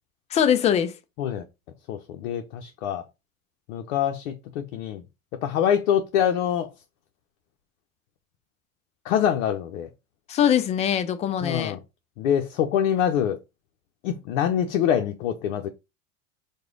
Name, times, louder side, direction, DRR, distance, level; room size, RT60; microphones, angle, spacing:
voice 1, 0.3-0.9 10.3-11.8, left 9 dB, 20° left, 0.3 m, -22 dB
voice 2, 1.9-3.0 3.7-5.0 5.4-6.7 9.0-9.9 11.4-11.8 12.2-13.4 14.0-15.7, left 9 dB, 65° left, 0.7 m, -25 dB
4.7 x 2.3 x 3.7 m
hypercardioid pair, 85°, 41 cm